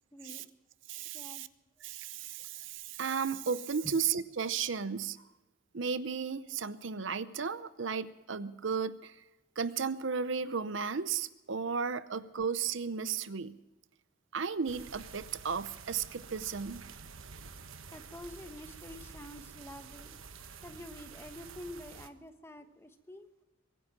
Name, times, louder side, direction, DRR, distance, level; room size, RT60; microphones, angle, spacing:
voice 1, 0.1-0.5 1.1-1.5 3.8-4.0 17.9-23.3, left 1 dB, 15° left, 8 dB, 1.1 m, -48 dB
voice 2, 0.9-1.5 1.8-5.2 5.7-9.2 9.6-13.6 14.3-16.9, right 6 dB, 65° right, 14 dB, 0.7 m, -34 dB
sound 1, 14.7-22.1, right 5 dB, 85° right, 1.1 m, -49 dB
23.5 x 10.0 x 5.9 m, 1.1 s
head